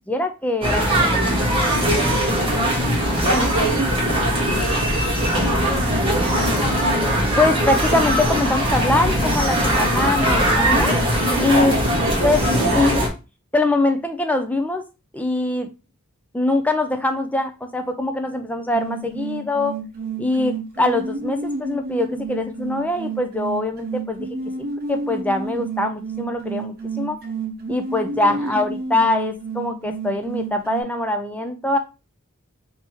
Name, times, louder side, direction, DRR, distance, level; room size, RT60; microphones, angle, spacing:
voice 1, 0.1-1.4 3.3-3.7 7.4-11.0 11.4-11.8 12.2-12.4 12.7-13.1 13.5-14.8 15.1-15.7 16.3-19.8 20.2-24.2 24.9-27.2 27.7-31.8, left 2 dB, 5° left, 0.4 m, -23 dB
sound 1, 0.6-13.1, equal, 25° right, 1.4 m, -20 dB
voice 2, 1.8-2.7 3.1-6.8 11.5-13.0 28.3-28.6, right 2 dB, 65° right, 1.1 m, -28 dB
sound 2, 18.7-30.8, right 3 dB, 45° right, 1.2 m, -30 dB
3.4 x 2.9 x 4.5 m
head